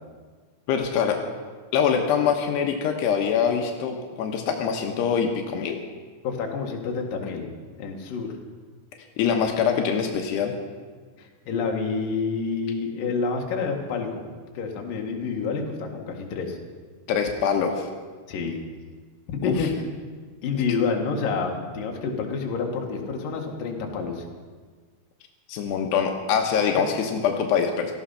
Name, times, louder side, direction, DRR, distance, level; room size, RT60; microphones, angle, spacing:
voice 1, 0.7-1.2 1.7-5.8 9.2-10.5 17.1-17.9 19.4-19.7 20.5-20.6 25.5-27.9, left 7 dB, 85° left, 3 dB, 3.2 m, -24 dB
voice 2, 6.2-7.5 7.8-8.3 11.2-14.2 14.5-16.6 18.3-18.6 19.3-19.7 20.4-24.2 26.8-26.9, left 4 dB, 60° left, 1 dB, 3.3 m, -28 dB
17.5 x 14.0 x 5.7 m, 1.5 s
omnidirectional pair, 4.7 m